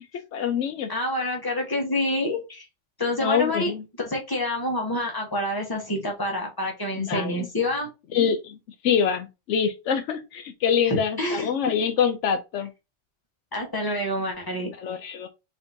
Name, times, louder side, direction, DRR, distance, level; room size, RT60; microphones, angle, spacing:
voice 1, 0.3-0.9 3.2-3.8 6.9-7.5 8.1-8.6 8.8-12.7 14.8-15.3, left 7 dB, 80° left, 0.9 m, -25 dB
voice 2, 0.9-2.6 3.0-3.7 4.0-7.9 10.9-11.5 13.5-14.7, left 1 dB, 20° left, 1.4 m, -27 dB
4.3 x 3.8 x 2.7 m
omnidirectional pair, 1.3 m